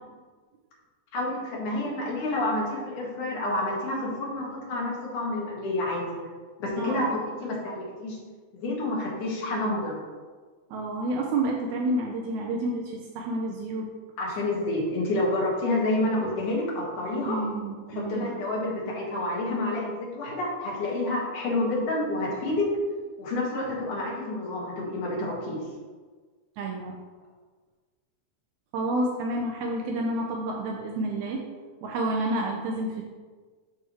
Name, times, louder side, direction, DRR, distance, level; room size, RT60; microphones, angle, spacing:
voice 1, 1.1-6.3 6.6-8.2 8.5-10.0 14.2-17.4 17.9-22.7 23.2-25.6, left 2 dB, 85° left, -3 dB, 3.2 m, -29 dB
voice 2, 6.8-7.2 10.7-13.9 17.3-18.3 26.6-27.0 28.7-31.4 31.8-33.0, right 1 dB, 80° right, 0 dB, 2.0 m, -29 dB
11.5 x 4.6 x 3.1 m, 1.4 s
omnidirectional pair, 3.5 m